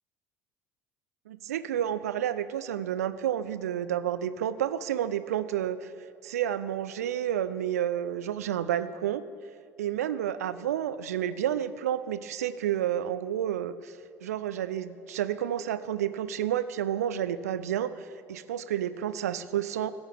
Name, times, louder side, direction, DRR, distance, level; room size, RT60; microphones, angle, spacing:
voice 1, 1.3-5.9 6.2-9.2 9.8-13.9 14.2-19.9, right 10 dB, 70° right, 14 dB, 0.4 m, -30 dB
15.0 x 7.9 x 3.4 m, 2.3 s
figure-of-eight pair, 60°, 9 cm